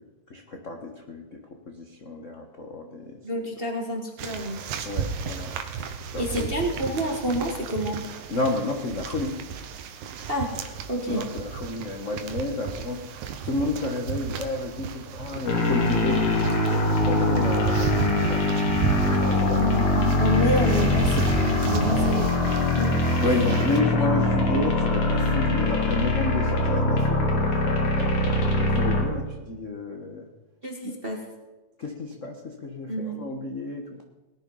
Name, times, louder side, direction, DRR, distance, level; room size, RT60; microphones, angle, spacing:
voice 1, 0.3-1.4 1.7-3.2 4.8-5.5 6.0-6.5 8.3-9.4 11.1-19.8 21.9-22.1 23.2-30.3 30.8-30.9 31.8-34.0, left 2 dB, 65° left, 2 dB, 0.7 m, -31 dB
voice 2, 3.2-4.6 6.2-8.0 10.3-10.5 10.9-11.3 19.5-23.4 30.6-31.3 32.9-33.2, equal, 30° right, 1 dB, 1.0 m, -28 dB
sound 1, 4.2-23.8, right 6 dB, 90° right, 2.5 m, -33 dB
sound 2, 15.5-29.0, left 2 dB, 85° left, 4.3 m, -23 dB
19.0 x 10.5 x 5.6 m, 1.1 s
omnidirectional pair, 3.4 m